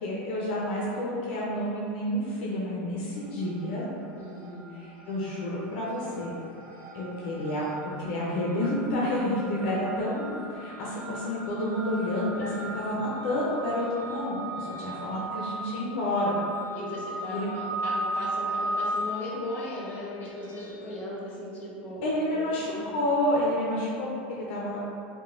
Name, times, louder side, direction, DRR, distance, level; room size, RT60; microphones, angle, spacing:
voice 1, 0.0-3.9 4.8-6.3 6.9-7.7 8.0-12.5 12.7-16.4 17.3-17.5 22.0-24.8, left 1 dB, 70° left, -4 dB, 0.5 m, -29 dB
sound 1, 3.2-3.8 4.1-20.7, right 1 dB, 55° right, 0.7 m, -37 dB
voice 2, 4.2-4.6 12.4-12.7 16.7-22.0 22.3-22.9, left 1 dB, 30° left, -6 dB, 0.8 m, -38 dB
3.0 x 2.1 x 2.4 m, 2.5 s
supercardioid pair, 130°, 6 cm